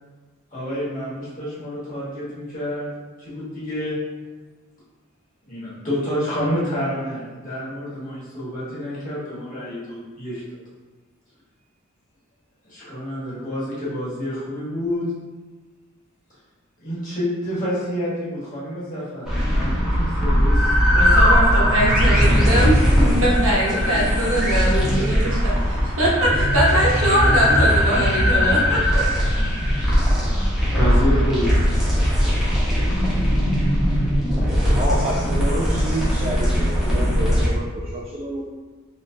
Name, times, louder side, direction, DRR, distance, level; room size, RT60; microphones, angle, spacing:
voice 1, 0.5-2.9 3.2-4.0 5.4-10.4 12.6-15.0 16.8-20.7 22.9-23.0 23.9-24.0 24.8-25.0 26.9-27.5 30.3-31.7, equal, 35° left, -9 dB, 1.4 m, -28 dB
sound 1, 19.2-37.5, equal, ahead, 0.9 m, -19 dB
voice 2, 20.9-29.0, right 1 dB, 65° right, -6 dB, 1.0 m, -22 dB
voice 3, 34.7-38.5, equal, 30° right, -5 dB, 0.4 m, -28 dB
3.1 x 3.1 x 2.7 m, 1.3 s
head